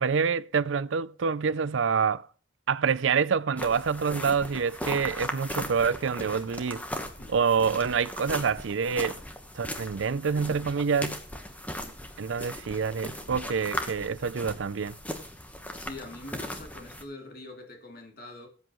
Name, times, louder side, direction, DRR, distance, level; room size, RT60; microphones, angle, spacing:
voice 1, 0.0-2.2 2.7-6.8 7.3-9.2 9.5-11.2 12.2-14.9, right 6 dB, 75° right, 0.5 m, -27 dB
sound 1, 3.6-17.0, left 1 dB, 10° left, 1.2 m, -38 dB
voice 2, 15.7-18.5, left 2 dB, 50° left, 2.7 m, -44 dB
18.5 x 8.3 x 3.1 m
head